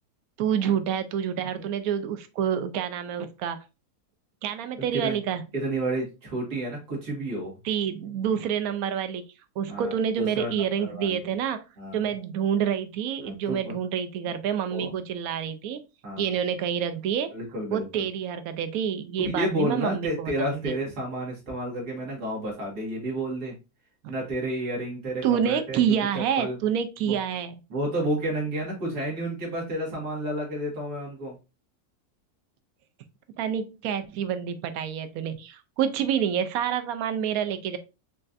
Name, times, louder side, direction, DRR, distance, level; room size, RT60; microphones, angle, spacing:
voice 1, 0.4-3.6 4.4-5.4 7.6-9.3 9.6-11.6 11.9-15.8 16.2-17.3 17.7-20.7 24.0-24.1 25.2-27.6 33.4-37.8, right 8 dB, 70° right, 10 dB, 1.0 m, -28 dB
voice 2, 5.5-7.6 9.7-11.2 11.8-12.0 13.2-13.8 14.7-14.9 16.0-16.3 17.3-18.1 19.2-23.6 24.1-25.8 26.1-26.6 27.1-27.2 27.7-31.4, right 1 dB, 90° right, -2 dB, 2.3 m, -31 dB
5.3 x 2.5 x 2.6 m, 0.29 s
omnidirectional pair, 1.6 m